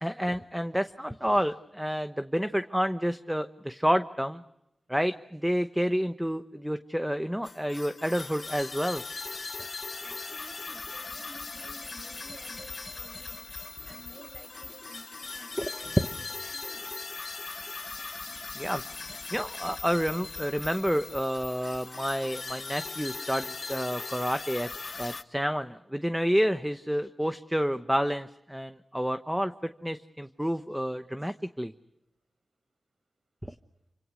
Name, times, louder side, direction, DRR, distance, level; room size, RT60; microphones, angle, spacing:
voice 1, 0.0-4.4 4.9-9.0 15.6-16.1 18.5-24.7 25.0-31.7 33.4-33.5, equal, 5° right, 9 dB, 0.9 m, -29 dB
sound 1, 7.4-25.2, left 4 dB, 50° left, 0.9 m, -39 dB
voice 2, 10.0-13.5 13.8-16.9, right 2 dB, 75° right, 7 dB, 6.1 m, -52 dB
28.5 x 26.0 x 6.3 m, 0.88 s
wide cardioid pair, 115°, 0 cm